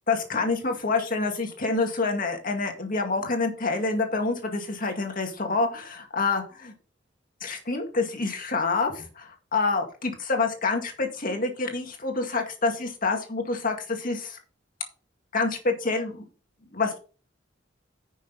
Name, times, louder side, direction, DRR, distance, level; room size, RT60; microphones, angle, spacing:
voice 1, 0.1-6.7 7.4-14.4 15.3-16.2 16.7-17.0, left 3 dB, 45° left, 3 dB, 2.1 m, -27 dB
10.5 x 6.2 x 4.0 m, 0.37 s
head